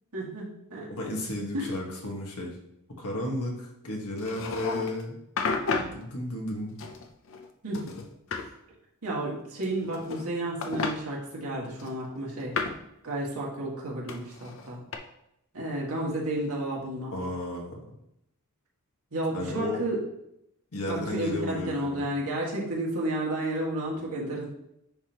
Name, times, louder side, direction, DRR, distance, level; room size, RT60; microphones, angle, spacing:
voice 1, 0.1-0.9 1.5-1.7 7.6-7.9 9.0-12.5 13.0-14.8 15.5-17.2 19.1-20.0 20.9-24.4, right 1 dB, 75° right, -4 dB, 2.0 m, -31 dB
voice 2, 0.9-2.6 3.0-5.2 5.7-6.7 8.3-8.6 17.1-17.8 19.3-19.8 20.7-22.0, left 1 dB, 85° left, 0 dB, 1.5 m, -33 dB
sound 1, 4.2-5.0 5.4-6.0 6.8-7.5 7.7-8.5 9.6-10.3 10.6-11.0 11.8-12.9 14.1-15.0, left 4 dB, 60° left, 0.6 m, -32 dB
10.0 x 3.5 x 2.9 m, 0.81 s
head